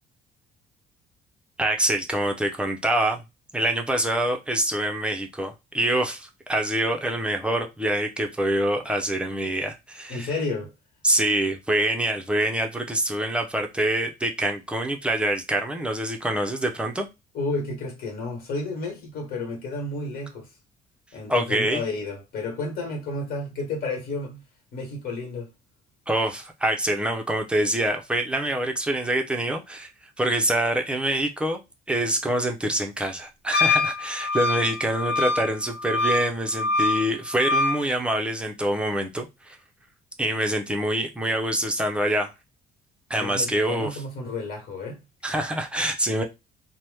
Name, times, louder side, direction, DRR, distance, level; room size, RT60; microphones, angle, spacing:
voice 1, 1.6-3.2 3.5-10.4 11.0-17.1 21.3-21.8 26.1-29.9 30.2-31.6 31.9-39.6 40.2-42.3 43.1-44.0 45.2-46.2, right 1 dB, 5° right, 0.6 m, -25 dB
voice 2, 10.1-10.7 17.3-20.5 21.1-24.4 24.7-25.5 43.1-45.0, left 3 dB, 60° left, 1.5 m, -31 dB
Wind instrument woodwind instrument, 33.5-37.8, left 3 dB, 85° left, 0.8 m, -25 dB
2.9 x 2.2 x 3.4 m
cardioid pair, 110°, 17 cm